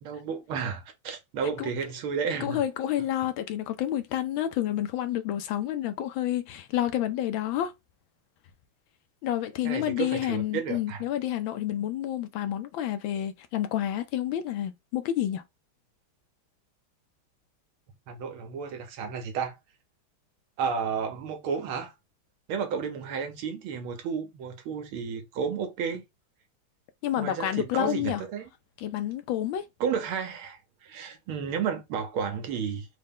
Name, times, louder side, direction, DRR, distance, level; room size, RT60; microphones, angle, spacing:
voice 1, 0.0-2.6 9.6-11.0 18.1-19.6 20.6-21.9 22.5-26.0 27.2-28.5 29.8-32.9, right 6 dB, 80° right, 1.7 m, -32 dB
voice 2, 2.4-7.7 9.2-15.4 27.0-28.2 28.8-29.6, left 12 dB, 75° left, 1.3 m, -29 dB
4.3 x 2.2 x 3.6 m
omnidirectional pair, 2.3 m